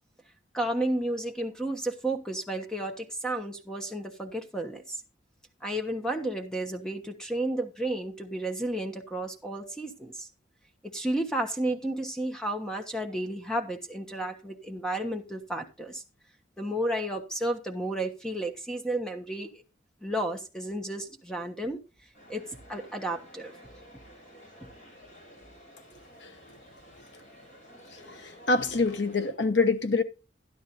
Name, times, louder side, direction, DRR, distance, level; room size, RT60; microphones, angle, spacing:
voice 1, 0.5-5.0 5.6-10.3 10.8-16.0 16.6-19.6 20.0-21.8 22.3-23.5, right 1 dB, 5° left, 1.3 m, -32 dB
sound 1, 22.1-29.3, equal, 40° left, 6.3 m, -52 dB
voice 2, 28.1-30.0, left 3 dB, 70° left, 1.2 m, -26 dB
12.0 x 11.5 x 2.7 m
head